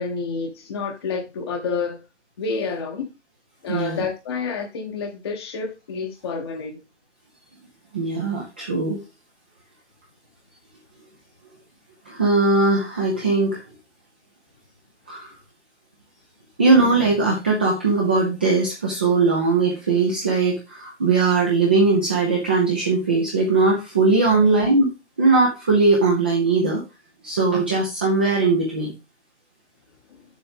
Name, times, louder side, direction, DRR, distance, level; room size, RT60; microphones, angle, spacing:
voice 1, 0.0-2.0 2.4-3.1 3.6-6.8 24.3-24.5, left 4 dB, 25° left, 1.0 m, -29 dB
voice 2, 3.7-4.0 7.9-9.0 12.1-13.6 15.1-15.3 16.6-24.9 25.2-26.8 27.2-28.9, right 3 dB, 10° right, 0.6 m, -20 dB
7.3 x 7.2 x 5.1 m
figure-of-eight pair, 155°, 34 cm